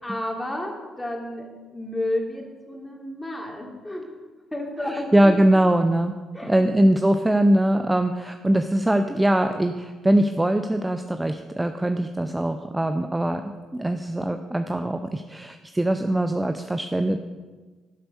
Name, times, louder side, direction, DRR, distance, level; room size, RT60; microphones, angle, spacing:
voice 1, 0.0-4.1 4.5-5.3 6.3-6.8, left 1 dB, 10° left, 0 dB, 2.8 m, -31 dB
voice 2, 4.8-6.1 6.5-17.2, right 1 dB, 10° right, 8 dB, 0.6 m, -22 dB
12.5 x 7.8 x 5.3 m, 1.3 s
figure-of-eight pair, 45°, 0 cm